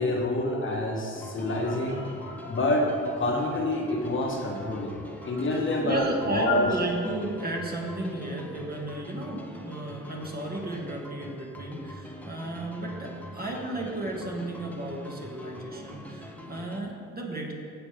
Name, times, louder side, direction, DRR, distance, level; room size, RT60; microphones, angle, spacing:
voice 1, 0.0-2.9 3.2-6.7, left 2 dB, 40° left, -1 dB, 1.5 m, -27 dB
sound 1, 1.1-16.8, left 1 dB, 5° left, 1.0 m, -44 dB
voice 2, 5.5-17.5, right 2 dB, 30° right, -2 dB, 2.0 m, -34 dB
15.5 x 5.6 x 3.5 m, 2.3 s
cardioid pair, 90°, 30 cm